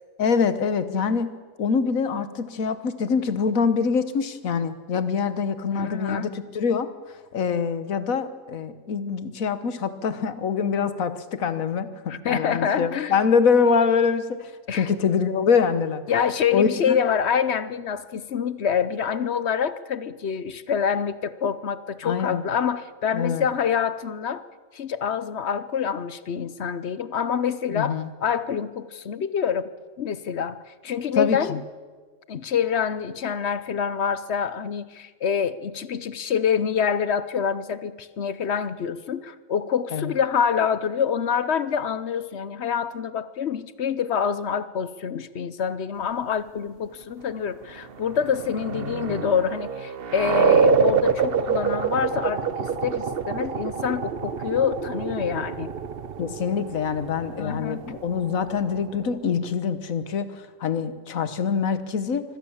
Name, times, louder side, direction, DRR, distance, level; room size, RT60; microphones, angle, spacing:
voice 1, 0.2-1.3 1.6-6.9 7.3-16.0 16.5-17.0 22.0-22.4 23.1-23.5 27.7-28.1 31.1-31.6 39.9-40.1 48.8-49.2 56.2-62.2, left 6 dB, 80° left, 12 dB, 1.6 m, -24 dB
voice 2, 5.7-6.3 12.1-13.1 14.7-14.9 16.1-24.4 24.7-29.7 30.0-31.6 32.3-55.7 57.4-57.8, left 7 dB, 55° left, 15 dB, 1.0 m, -26 dB
sound 1, 47.7-59.1, right 5 dB, 50° right, 1.0 m, -26 dB
24.5 x 16.5 x 7.2 m, 1.5 s
omnidirectional pair, 1.4 m